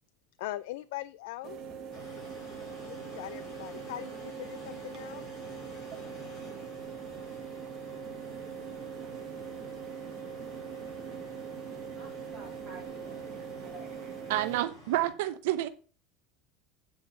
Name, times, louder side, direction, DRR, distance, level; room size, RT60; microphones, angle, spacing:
voice 1, 0.4-1.6 2.8-5.3, left 15 dB, 75° left, 14 dB, 0.5 m, -41 dB
sound 1, 1.4-14.6, right 7 dB, 30° right, 1.7 m, -42 dB
sound 2, 1.9-15.1, left 2 dB, 30° left, 4.7 m, -51 dB
voice 2, 11.9-14.2 14.9-15.0, right 1 dB, 10° right, -7 dB, 2.6 m, -52 dB
voice 3, 14.3-15.7, right 14 dB, 75° right, 11 dB, 0.8 m, -29 dB
8.7 x 5.4 x 6.9 m, 0.38 s
cardioid pair, 175°, 0 cm